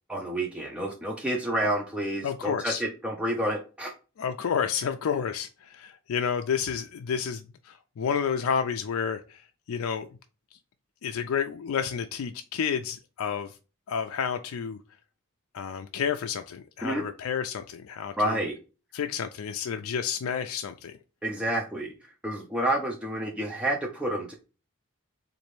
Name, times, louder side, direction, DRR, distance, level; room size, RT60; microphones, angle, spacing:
voice 1, 0.1-3.9 16.8-17.0 18.2-18.6 21.2-21.9 22.2-24.3, right 1 dB, 5° right, 0.5 m, -29 dB
voice 2, 2.2-2.8 4.2-10.1 11.0-13.5 13.9-14.8 15.5-18.4 18.9-21.0, left 7 dB, 80° left, 0.4 m, -30 dB
4.0 x 2.6 x 3.1 m
head